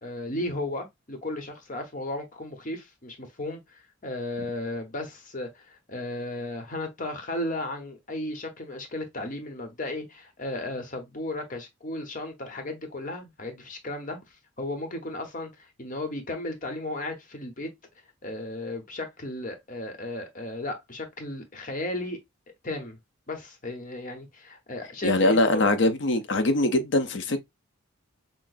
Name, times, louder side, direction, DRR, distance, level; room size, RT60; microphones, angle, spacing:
voice 1, 0.0-14.2 14.6-17.7 18.2-22.2 22.6-23.0 23.3-25.7, left 2 dB, 40° left, 0.9 m, -35 dB
voice 2, 25.0-27.4, left 2 dB, 55° left, 0.6 m, -22 dB
5.9 x 2.0 x 2.5 m
head